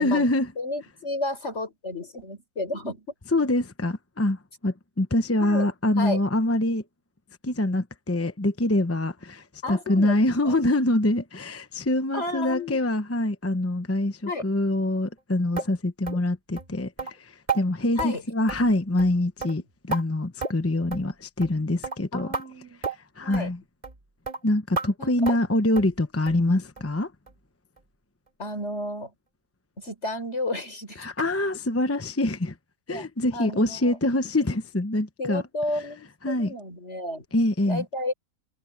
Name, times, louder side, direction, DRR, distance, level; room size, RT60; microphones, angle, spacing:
voice 1, 0.0-0.5 3.3-6.8 7.4-22.3 23.2-23.6 24.4-27.1 31.0-32.5 32.9-35.4 36.2-36.5 37.3-37.8, left 1 dB, 15° left, 0.6 m, -25 dB
voice 2, 0.6-3.1 5.4-5.7 6.0-6.2 9.6-10.2 10.4-10.6 12.1-12.8 14.2-14.4 18.0-18.2 22.1-22.8 23.2-23.5 25.0-25.4 28.4-29.1 29.8-31.1 32.9-33.1 33.3-34.0 35.2-37.2 37.6-38.1, left 2 dB, 45° left, 5.0 m, -32 dB
sound 1, 15.6-15.7 16.1-16.2 16.6-16.7 17.0-17.1 17.5-17.6 18.0-18.1 18.5-18.7 19.0-19.1 19.4-20.0 20.4-20.6 20.9-21.1 21.4-21.6 21.8-22.0 22.3-22.5 22.8-23.0 23.3-23.5 23.8-24.0 24.3-24.4 24.8-24.9 25.3-25.5 25.8-25.9 26.3-26.4 26.8-26.9 27.3-27.4 27.8-27.9, right 4 dB, 30° right, 2.7 m, -31 dB
omnidirectional pair, 1.6 m